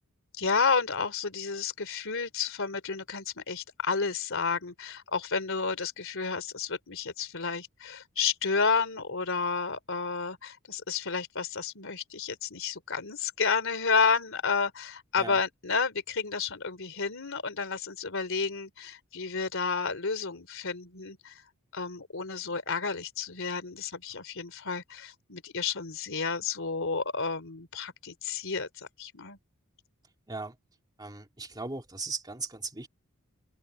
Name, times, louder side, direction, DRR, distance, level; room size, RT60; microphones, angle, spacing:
voice 1, 0.3-21.4 21.7-29.4, left 5 dB, 65° left, 3.5 m, -31 dB
voice 2, 31.0-32.9, right 3 dB, 20° right, 2.3 m, -38 dB
open air
head